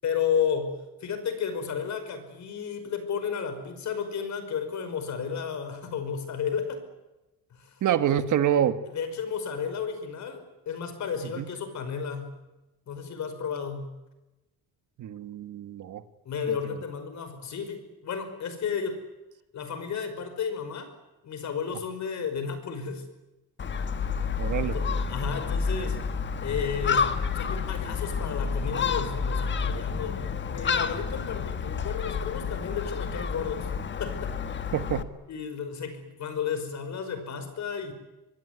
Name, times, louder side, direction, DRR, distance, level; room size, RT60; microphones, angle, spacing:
voice 1, 0.0-6.8 7.5-7.8 8.9-12.4 12.9-13.9 16.3-19.0 19.5-20.9 21.2-23.1 24.5-26.0 26.4-33.7 34.0-34.4 35.3-37.9, left 6 dB, 50° left, 9 dB, 5.4 m, -33 dB
voice 2, 7.8-8.8 11.4-11.5 15.0-16.0 16.5-16.6 24.4-24.7 34.7-35.1, right 10 dB, 55° right, 11 dB, 1.6 m, -26 dB
Gull seagull, 23.6-35.0, left 5 dB, 30° left, 1.5 m, -29 dB
24.5 x 23.0 x 9.7 m, 1.0 s
cardioid pair, 160°, 37 cm